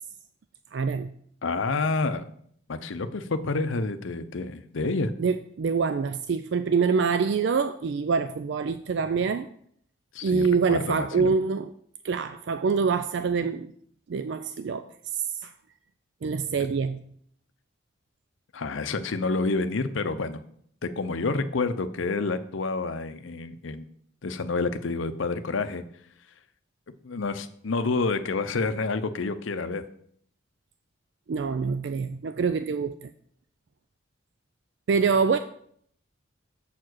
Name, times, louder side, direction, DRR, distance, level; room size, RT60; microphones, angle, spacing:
voice 1, 0.7-1.1 5.2-9.5 10.2-11.7 12.0-13.7 14.1-14.9 15.1-15.5 16.2-17.0 31.3-33.1 34.9-35.4, right 5 dB, 55° right, 0.3 m, -25 dB
voice 2, 1.4-2.2 2.7-5.1 10.1-11.3 18.5-20.4 20.8-23.8 24.2-25.8 27.0-29.8, left 3 dB, 70° left, 0.6 m, -28 dB
7.3 x 4.7 x 6.1 m
head